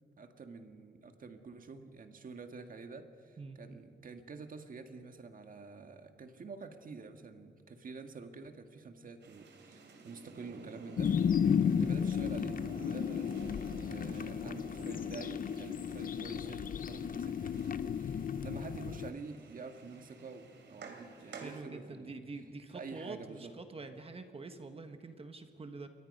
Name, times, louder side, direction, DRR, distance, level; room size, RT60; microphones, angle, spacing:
voice 1, 0.2-11.1 11.6-22.2 22.7-23.5, right 4 dB, 50° right, 6 dB, 1.7 m, -48 dB
sound 1, 9.2-21.6, right 3 dB, 85° right, 3.1 m, -51 dB
sound 2, 11.0-19.1, left 7 dB, 50° left, 0.6 m, -33 dB
voice 2, 21.2-25.9, right 3 dB, 30° right, 7 dB, 1.4 m, -46 dB
28.5 x 23.0 x 5.4 m, 2.2 s
wide cardioid pair, 145°, 18 cm